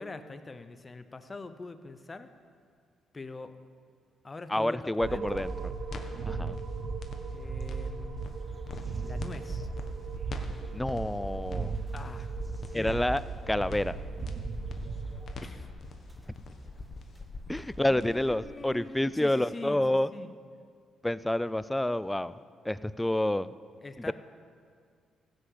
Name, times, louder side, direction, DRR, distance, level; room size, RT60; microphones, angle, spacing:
voice 1, 0.0-2.3 3.1-3.6 4.2-5.5 7.3-8.2 9.0-9.7 11.9-12.3 12.7-13.0 15.4-15.7 17.8-20.3 23.8-24.1, left 3 dB, 25° left, 10 dB, 0.8 m, -43 dB
voice 2, 4.5-5.7 6.3-6.6 10.7-11.8 12.7-13.2 13.5-14.0 17.5-20.1 21.0-22.3 22.7-23.5 24.1-24.2, left 1 dB, 10° left, 16 dB, 0.4 m, -28 dB
sound 1, 5.0-15.3, right 5 dB, 55° right, 0.7 m, -37 dB
sound 2, 5.3-18.4, left 3 dB, 55° left, 1.3 m, -43 dB
sound 3, 8.2-18.6, right 1 dB, 10° right, 1.2 m, -53 dB
15.5 x 6.6 x 7.9 m, 2.1 s
cardioid pair, 90°, 0 cm